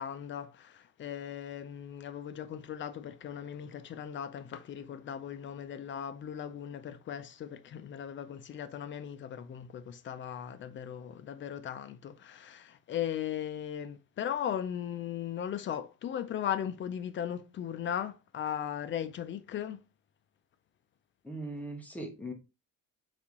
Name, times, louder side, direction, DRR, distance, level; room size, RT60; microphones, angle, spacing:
voice 1, 0.0-19.8, left 9 dB, 35° left, 0.4 m, -38 dB
voice 2, 21.2-22.3, right 1 dB, 5° left, 0.8 m, -39 dB
4.1 x 3.4 x 2.9 m
cardioid pair, 165°, 36 cm